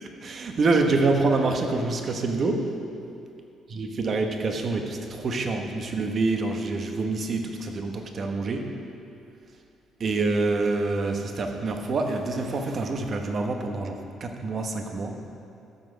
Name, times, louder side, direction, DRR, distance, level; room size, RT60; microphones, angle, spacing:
voice 1, 0.2-2.7 3.7-8.7 10.0-15.2, right 3 dB, 35° right, 4 dB, 1.0 m, -26 dB
13.0 x 7.8 x 5.0 m, 2.6 s
cardioid pair, 155°, 0 cm